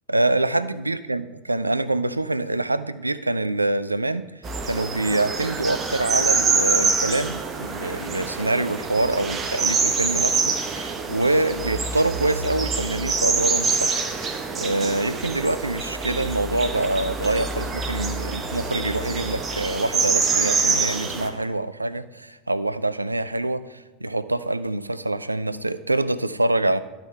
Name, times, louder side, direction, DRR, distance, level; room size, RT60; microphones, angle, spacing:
voice 1, 0.1-4.3 4.6-26.8, right 2 dB, 85° right, 15 dB, 0.3 m, -25 dB
sound 1, 4.4-21.3, right 4 dB, 25° right, 1.2 m, -25 dB
11.5 x 5.7 x 4.7 m, 1.2 s
figure-of-eight pair, 80°, 0 cm